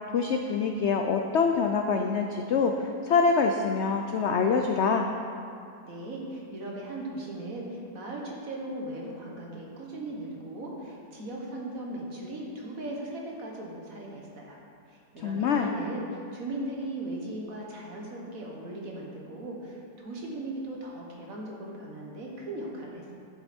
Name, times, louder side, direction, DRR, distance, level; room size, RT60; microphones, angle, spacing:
voice 1, 0.1-5.1 15.2-15.7, left 5 dB, 80° left, 4 dB, 0.6 m, -25 dB
voice 2, 5.8-14.6 14.9-23.1, right 1 dB, 55° right, -2 dB, 1.8 m, -38 dB
10.5 x 7.7 x 4.3 m, 2.5 s
omnidirectional pair, 1.7 m